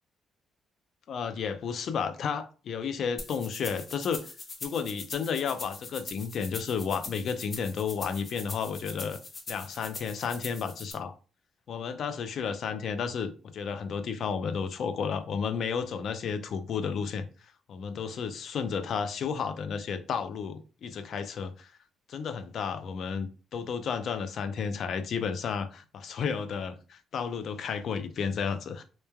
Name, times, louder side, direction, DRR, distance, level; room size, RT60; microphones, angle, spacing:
voice 1, 1.1-4.3 4.6-9.2 9.5-11.1 11.7-17.3 17.7-21.7 22.1-28.8, left 6 dB, 65° left, 0.4 m, -32 dB
sound 1, 3.2-10.9, left 3 dB, 40° left, 0.7 m, -42 dB
3.0 x 2.2 x 2.2 m
cardioid pair, 90°, 0 cm